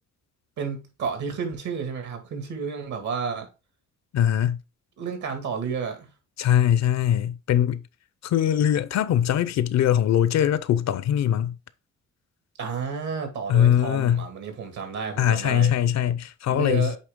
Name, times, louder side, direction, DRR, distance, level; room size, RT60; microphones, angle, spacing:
voice 1, 0.6-3.5 5.0-6.1 12.6-15.7 16.5-17.0, right 5 dB, 70° right, 2.1 m, -31 dB
voice 2, 4.1-4.6 6.4-7.8 8.2-11.5 13.5-14.2 15.2-16.9, left 10 dB, 60° left, 0.6 m, -21 dB
8.2 x 3.2 x 3.6 m
cardioid pair, 90°, 30 cm